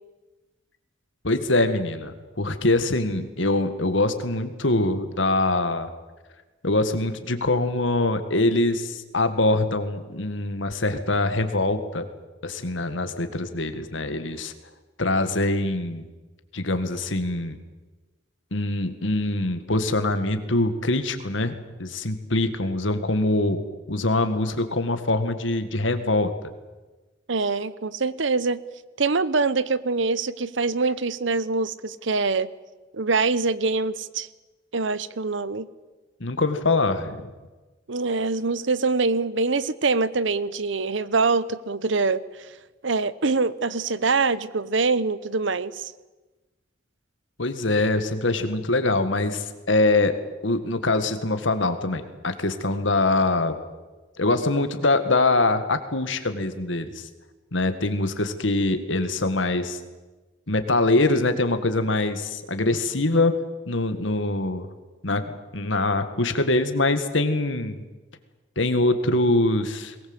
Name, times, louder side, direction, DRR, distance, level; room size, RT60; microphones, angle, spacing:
voice 1, 1.2-5.9 6.6-12.1 12.4-14.5 15.0-16.1 16.5-17.6 18.5-23.6 23.9-26.3 36.2-37.2 47.4-50.2 50.4-53.6 54.2-57.1 57.5-59.8 60.5-63.3 63.7-64.7 65.0-65.2 65.5-67.8 68.6-69.9, left 2 dB, 70° left, 9 dB, 2.0 m, -23 dB
voice 2, 27.3-28.6 29.0-32.5 32.9-34.3 34.7-35.7 37.9-42.2 42.8-45.9, right 4 dB, 70° right, 17 dB, 0.9 m, -24 dB
21.5 x 19.0 x 8.1 m, 1.2 s
head